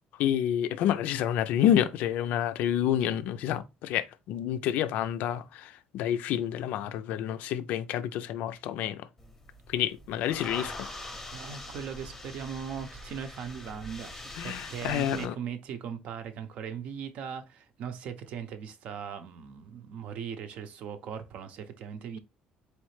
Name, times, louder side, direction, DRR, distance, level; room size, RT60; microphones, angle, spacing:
voice 1, 0.2-9.1 9.7-10.9 14.4-15.3, left 10 dB, 70° left, 0.4 m, -29 dB
sound 1, 9.2-15.3, left 1 dB, 10° left, 0.7 m, -43 dB
voice 2, 11.3-14.1 14.4-22.2, right 7 dB, 55° right, 0.6 m, -39 dB
4.2 x 3.2 x 3.1 m
cardioid pair, 165°, 3 cm